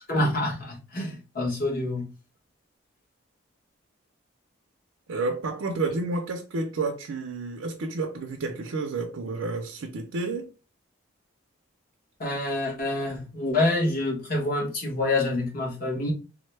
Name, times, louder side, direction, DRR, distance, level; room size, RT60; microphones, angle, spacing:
voice 1, 0.1-2.1 12.2-16.1, left 2 dB, 45° left, 1.1 m, -27 dB
voice 2, 5.1-10.5, right 3 dB, 85° right, 0.5 m, -30 dB
3.6 x 2.1 x 3.2 m
head